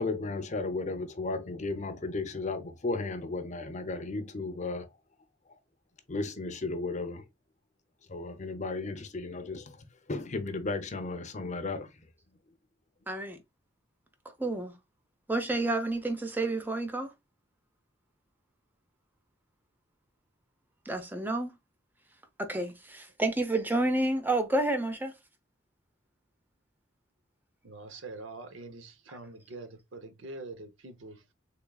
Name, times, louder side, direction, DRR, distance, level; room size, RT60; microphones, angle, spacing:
voice 1, 0.0-4.9 6.1-7.2 8.1-9.6 10.1-11.9, left 3 dB, 40° left, 0.7 m, -34 dB
voice 2, 13.1-13.4 14.4-14.7 15.3-17.1 20.9-21.5 22.4-25.1, right 2 dB, 10° right, 0.7 m, -29 dB
voice 3, 27.6-31.3, right 3 dB, 80° right, 0.7 m, -44 dB
3.6 x 3.5 x 2.3 m
head